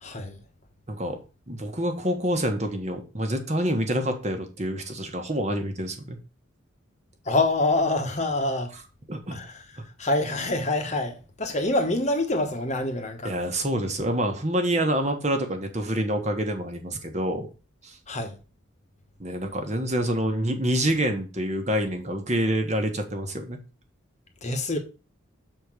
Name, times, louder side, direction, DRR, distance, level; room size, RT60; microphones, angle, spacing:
voice 1, 0.0-0.4 7.3-8.7 9.3-9.6 10.0-13.3 18.1-18.4 24.4-24.8, left 2 dB, 35° left, 1.2 m, -26 dB
voice 2, 0.9-1.2 1.5-6.2 9.1-9.4 13.2-17.5 17.8-18.0 19.2-23.6, right 1 dB, 35° right, 1.4 m, -27 dB
6.7 x 4.4 x 6.2 m
head